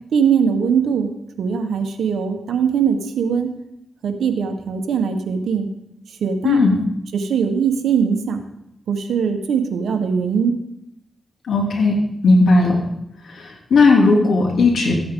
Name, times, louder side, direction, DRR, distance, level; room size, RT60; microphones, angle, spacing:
voice 1, 0.1-1.1 1.4-3.5 4.0-5.7 6.2-6.7 7.1-8.4 8.9-10.6, right 6 dB, 85° right, 6 dB, 1.2 m, -20 dB
voice 2, 6.4-6.8 11.5-12.0 12.2-12.7 13.3-14.9, left 3 dB, 75° left, -1 dB, 3.0 m, -15 dB
14.5 x 8.6 x 3.8 m, 0.82 s
cardioid pair, 60°, 0 cm